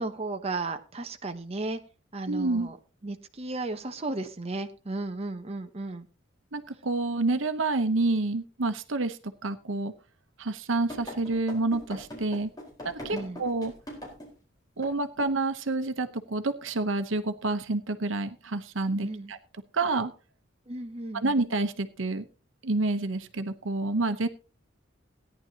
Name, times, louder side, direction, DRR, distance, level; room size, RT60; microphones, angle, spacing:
voice 1, 0.0-1.8 2.1-2.8 3.0-6.1 13.1-13.4 19.0-19.3 20.7-21.3, right 2 dB, 30° right, 6 dB, 0.8 m, -34 dB
voice 2, 2.3-2.7 6.5-9.9 10.4-12.5 12.8-13.7 14.8-19.4 19.7-20.1 21.1-22.2 22.6-24.3, right 2 dB, 75° right, 10 dB, 1.0 m, -28 dB
sound 1, 10.9-14.4 14.8-14.9 15.2-15.4, left 1 dB, 20° left, 4.5 m, -41 dB
17.0 x 10.5 x 2.9 m, 0.32 s
head